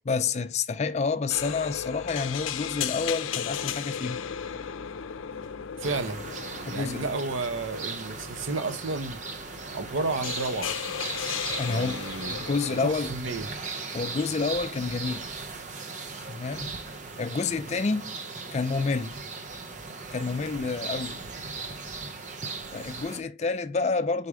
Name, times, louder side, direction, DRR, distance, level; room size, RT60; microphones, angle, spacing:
voice 1, 0.1-4.2 6.7-7.1 11.6-13.1 13.9-15.2 16.3-16.7 17.2-18.2 18.5-19.2 20.1-21.2 22.7-24.3, left 4 dB, 35° left, 0.4 m, -29 dB
sound 1, 1.3-12.9, left 8 dB, 90° left, 0.5 m, -36 dB
sound 2, 5.8-23.2, right 4 dB, 40° right, 0.6 m, -38 dB
voice 2, 5.8-6.3 6.7-9.2 9.7-10.7 11.7-12.5 12.8-13.5, right 3 dB, 80° right, 0.7 m, -32 dB
4.9 x 4.1 x 4.7 m
head